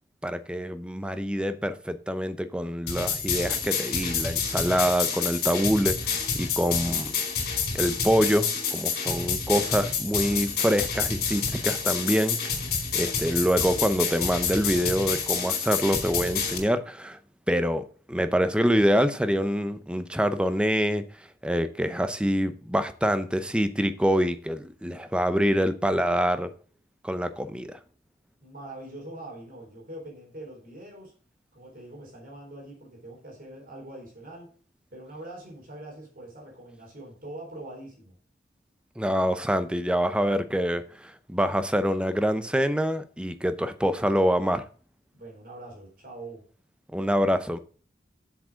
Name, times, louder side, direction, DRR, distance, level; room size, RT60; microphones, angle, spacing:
voice 1, 0.2-7.1 7.7-12.4 12.9-17.2 17.5-21.0 21.4-26.5 27.0-27.8 39.0-44.6 46.9-47.6, equal, 5° right, 0.6 m, -25 dB
sound 1, 2.9-16.6, left 6 dB, 60° left, 4.2 m, -28 dB
voice 2, 28.4-31.1 31.5-34.5 34.9-38.1 45.1-46.4, right 1 dB, 50° right, 4.4 m, -43 dB
7.5 x 7.4 x 6.3 m
head